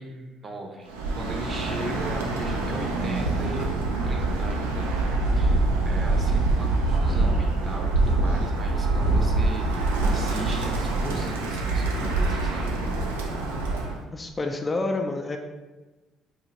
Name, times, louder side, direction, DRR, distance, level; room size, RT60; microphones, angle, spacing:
voice 1, 0.0-12.7, right 1 dB, 40° right, 1 dB, 0.6 m, -38 dB
Bird, 0.9-14.0, right 2 dB, 85° right, 0.3 m, -25 dB
sound 1, 5.2-12.3, equal, 80° left, 0.6 m, -36 dB
voice 2, 14.1-15.4, left 2 dB, 30° left, 4 dB, 0.3 m, -28 dB
3.0 x 2.4 x 2.8 m, 1.2 s
hypercardioid pair, 50°, 0 cm